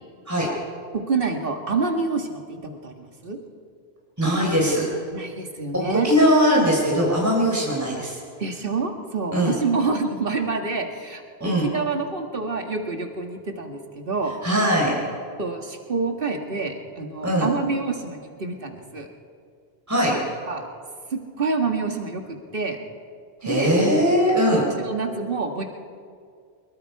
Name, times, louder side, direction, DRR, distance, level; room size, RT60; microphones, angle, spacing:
voice 1, 0.9-2.6 2.8-3.4 5.1-6.1 8.4-14.3 15.4-19.1 20.5-20.6 21.1-22.8 23.4-23.7 24.5-25.6, right 4 dB, 60° right, 4 dB, 2.0 m, -27 dB
voice 2, 4.2-4.8 5.7-8.2 9.3-9.6 11.4-11.7 14.4-14.9 17.2-17.5 19.9-20.2 23.4-24.6, equal, 15° right, -3 dB, 4.1 m, -20 dB
24.5 x 22.0 x 4.8 m, 2.2 s
omnidirectional pair, 1.1 m